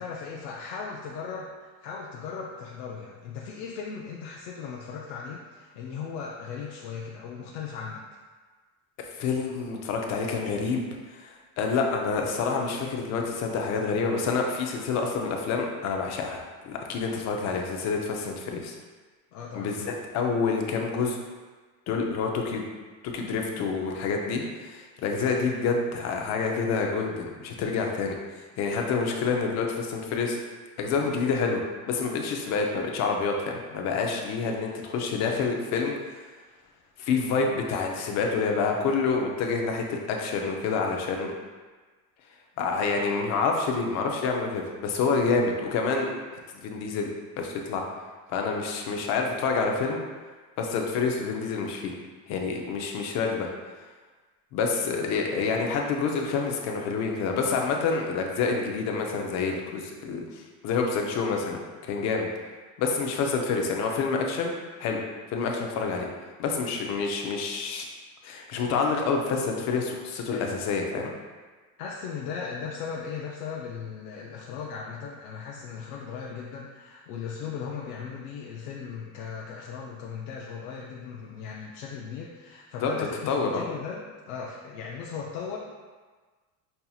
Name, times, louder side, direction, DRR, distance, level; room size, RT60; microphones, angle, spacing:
voice 1, 0.0-8.0 19.3-19.9 70.3-70.6 71.8-85.6, left 6 dB, 90° left, -3 dB, 0.6 m, -37 dB
voice 2, 9.0-18.7 19.5-21.2 21.9-22.7 23.0-28.2 28.6-30.4 30.8-31.6 31.9-35.9 37.0-41.3 42.6-46.1 46.6-47.1 47.4-47.8 48.3-50.0 50.6-51.9 52.3-53.5 54.5-62.3 62.8-64.5 64.8-65.0 65.3-66.1 66.4-67.9 68.2-71.1 82.8-82.9 83.3-83.6, left 4 dB, 40° left, 1 dB, 0.5 m, -28 dB
5.3 x 2.8 x 2.3 m, 1.4 s
cardioid pair, 150°, 42 cm